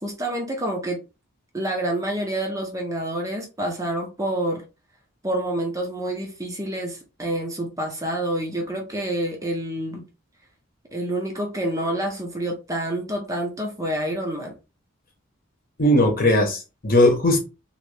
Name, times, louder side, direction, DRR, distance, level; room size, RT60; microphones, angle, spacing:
voice 1, 0.0-1.0 1.5-4.6 5.2-10.0 10.9-14.5, right 1 dB, 15° right, 0.6 m, -28 dB
voice 2, 15.8-17.4, left 1 dB, 40° left, 1.0 m, -18 dB
3.2 x 3.0 x 3.2 m
head